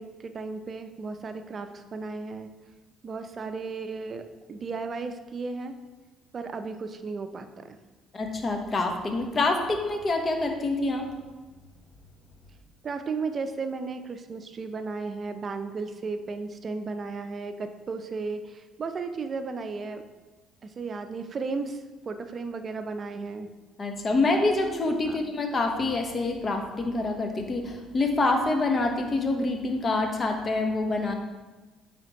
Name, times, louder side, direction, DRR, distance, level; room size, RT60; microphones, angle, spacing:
voice 1, 0.0-2.5 3.0-5.7 6.3-7.8 12.8-20.0 20.6-23.5 25.1-25.2, right 4 dB, 40° right, 8 dB, 0.5 m, -34 dB
voice 2, 8.1-11.1 23.8-31.1, left 2 dB, 40° left, 4 dB, 1.0 m, -26 dB
9.0 x 3.5 x 3.0 m, 1.3 s
hypercardioid pair, 55°, 0 cm